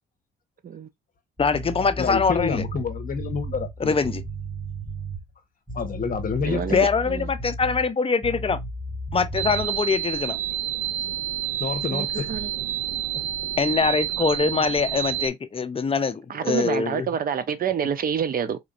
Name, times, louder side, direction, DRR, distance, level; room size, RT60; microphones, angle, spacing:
voice 1, 1.4-2.6 3.8-4.2 6.7-8.6 9.1-10.4 13.6-17.1, left 5 dB, 30° left, 0.6 m, -23 dB
sound 1, 1.4-5.3 5.7-7.9 8.2-9.7, right 1 dB, 10° right, 1.4 m, -34 dB
voice 2, 2.0-4.0 5.7-6.6 11.6-12.3, left 5 dB, 45° left, 1.0 m, -28 dB
voice 3, 6.4-7.3 11.9-12.5 16.3-18.6, right 7 dB, 45° right, 0.7 m, -27 dB
sound 2, 9.4-15.3, right 12 dB, 90° right, 0.6 m, -29 dB
4.3 x 2.6 x 2.5 m
cardioid pair, 90°, 20 cm